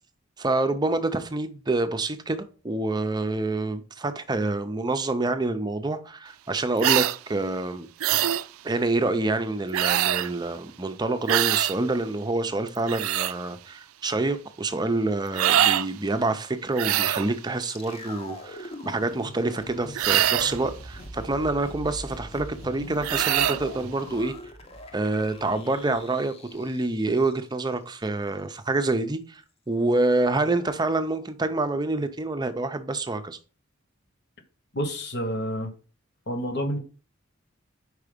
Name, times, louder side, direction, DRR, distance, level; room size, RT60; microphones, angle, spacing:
voice 1, 0.4-7.9 8.6-24.3 24.9-29.4 29.7-33.4, right 2 dB, 20° right, 0.6 m, -27 dB
sound 1, 6.8-7.2 8.0-8.4 9.7-10.3 11.3-11.7 12.7-13.3 15.3-15.9 16.7-17.3 19.9-20.6 23.0-23.6, right 12 dB, 85° right, 0.3 m, -23 dB
sound 2, 17.6-27.7 28.0-28.1, left 1 dB, 30° left, 0.8 m, -42 dB
voice 2, 34.7-35.7 36.3-36.8, equal, 55° left, 1.3 m, -29 dB
4.9 x 4.8 x 5.1 m
head